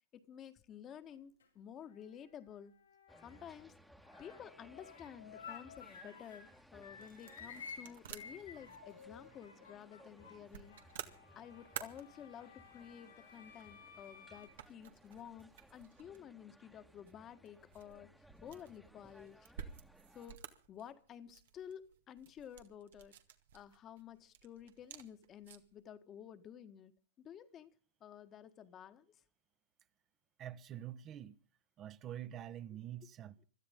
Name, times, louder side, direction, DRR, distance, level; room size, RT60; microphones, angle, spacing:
voice 1, 0.1-2.7 3.2-3.7 4.2-11.0 11.3-18.1 18.4-19.5 20.1-23.1 23.5-26.9 27.2-27.7 28.0-29.2, left 9 dB, 30° left, 1.6 m, -52 dB
sound 1, 0.9-1.5 1.8-3.7 4.0-6.5 6.8-14.5, left 6 dB, 85° left, 6.2 m, -55 dB
sound 2, 3.1-20.4, equal, ahead, 1.5 m, -62 dB
sound 3, 6.2-25.8, right 9 dB, 70° right, 2.0 m, -54 dB
voice 2, 30.4-31.4 31.8-33.4, right 11 dB, 35° right, 1.2 m, -46 dB
26.0 x 13.0 x 3.7 m
hypercardioid pair, 110°, 0 cm